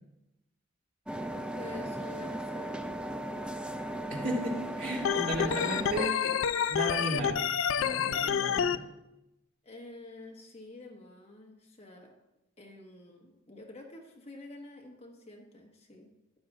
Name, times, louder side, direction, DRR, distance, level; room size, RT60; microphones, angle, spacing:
sound 1, 1.1-6.1, right 1 dB, 5° right, 0.3 m, -37 dB
voice 1, 1.3-3.6 3.9-4.3 5.4-7.3 8.0-8.4 9.6-12.1 12.6-16.1, left 2 dB, 30° left, 1 dB, 1.4 m, -48 dB
voice 2, 4.1-6.3 6.7-7.5 7.8-8.8, right 1 dB, 75° right, -3 dB, 2.6 m, -34 dB
Organ, 5.0-8.8, left 8 dB, 70° left, 0.3 m, -28 dB
12.0 x 10.5 x 2.4 m, 0.92 s
head